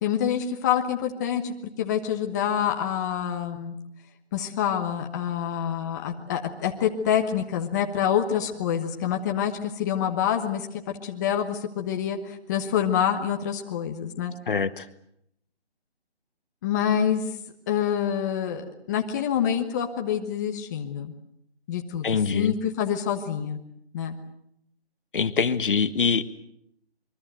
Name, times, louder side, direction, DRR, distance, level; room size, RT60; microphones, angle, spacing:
voice 1, 0.0-3.7 4.3-10.7 11.0-14.3 16.6-17.2 17.7-21.1 21.7-22.1 22.3-23.6 23.9-24.2, left 9 dB, 15° left, 3 dB, 1.2 m, -26 dB
voice 2, 14.5-14.9 22.0-22.5 25.1-26.2, left 5 dB, 55° left, 12 dB, 1.4 m, -24 dB
25.5 x 23.0 x 7.8 m, 0.75 s
hypercardioid pair, 165°, 32 cm